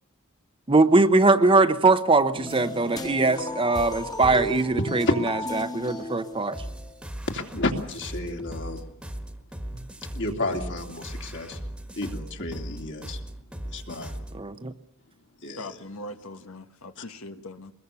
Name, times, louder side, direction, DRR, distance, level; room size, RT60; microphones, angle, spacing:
voice 1, 0.7-5.1 5.5-6.6 14.3-14.7, right 3 dB, 25° right, 10 dB, 0.9 m, -21 dB
sound 1, 2.3-6.9, left 1 dB, 20° left, 1.5 m, -34 dB
voice 2, 5.1-5.5 7.3-8.9 9.7-9.8 10.1-11.6 12.0-13.2 13.7-14.1 15.4-15.8 17.0-17.1, left 2 dB, 60° left, 3 dB, 2.9 m, -31 dB
sound 2, 6.5-14.4, right 1 dB, 5° right, 1.6 m, -38 dB
voice 3, 15.6-17.7, left 2 dB, 85° left, 7 dB, 1.4 m, -40 dB
24.0 x 21.0 x 7.1 m, 0.72 s
head